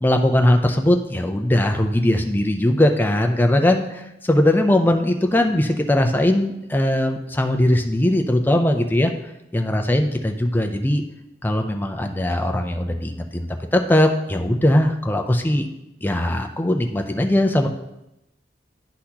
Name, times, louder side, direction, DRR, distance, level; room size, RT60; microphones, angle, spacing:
voice 1, 0.0-9.1 9.5-11.0 11.4-15.7 16.0-17.7, left 1 dB, 10° left, 4 dB, 0.5 m, -20 dB
11.0 x 4.1 x 2.9 m, 0.90 s
head